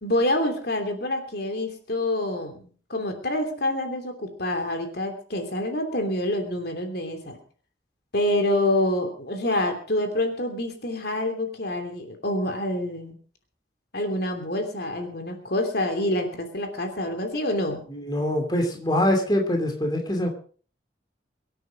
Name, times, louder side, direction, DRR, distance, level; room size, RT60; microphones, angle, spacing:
voice 1, 0.0-7.4 8.1-13.2 13.9-17.8, left 1 dB, 55° left, 5 dB, 3.0 m, -27 dB
voice 2, 17.9-20.3, left 1 dB, 20° left, 2 dB, 2.9 m, -24 dB
23.5 x 9.2 x 5.1 m, 0.43 s
head